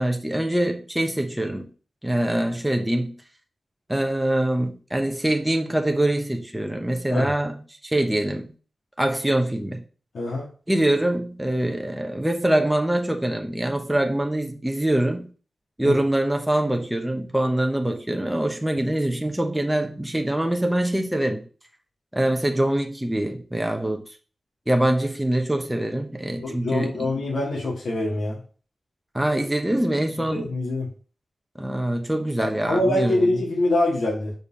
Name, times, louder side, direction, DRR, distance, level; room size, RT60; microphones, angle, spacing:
voice 1, 0.0-1.7 2.0-3.1 3.9-8.5 9.0-9.8 10.7-15.3 15.8-21.4 22.1-24.0 24.7-26.9 29.1-30.5 31.5-33.3, right 1 dB, 5° right, 0.9 m, -24 dB
voice 2, 10.1-10.5 15.8-16.0 26.4-28.4 30.3-30.9 32.4-34.3, left 1 dB, 70° left, 2.4 m, -24 dB
5.3 x 4.5 x 5.6 m
wide cardioid pair, 115°, 0 cm